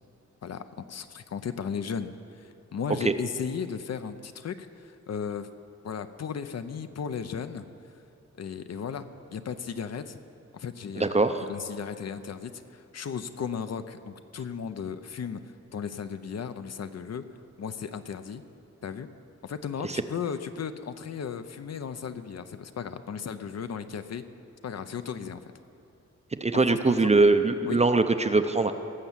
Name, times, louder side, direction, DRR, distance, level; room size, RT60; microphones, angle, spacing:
voice 1, 0.4-2.1 2.4-5.5 5.8-7.6 8.4-10.2 10.5-15.4 15.7-17.2 17.6-18.4 18.8-19.1 19.4-24.2 24.6-25.5 26.5-27.1 27.7-27.8, left 7 dB, 60° left, 11 dB, 0.6 m, -35 dB
voice 2, 11.0-11.4 19.9-20.0 26.4-28.7, right 3 dB, 25° right, 9 dB, 0.5 m, -22 dB
18.0 x 6.9 x 7.3 m, 2.7 s
wide cardioid pair, 140°, 29 cm